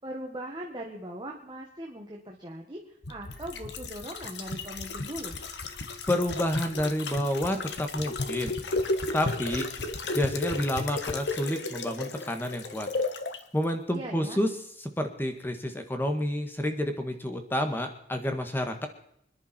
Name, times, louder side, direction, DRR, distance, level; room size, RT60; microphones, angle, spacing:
voice 1, 0.0-5.4 13.9-14.4, right 1 dB, 25° right, 0 dB, 1.7 m, -40 dB
sound 1, 3.0-13.4 13.7-13.8, left 3 dB, 75° left, 1.4 m, -34 dB
voice 2, 6.1-8.5 9.1-9.7 10.1-12.9 13.5-14.5 15.0-18.9, left 1 dB, 10° left, 5 dB, 1.6 m, -29 dB
26.0 x 10.5 x 4.4 m, 0.70 s
head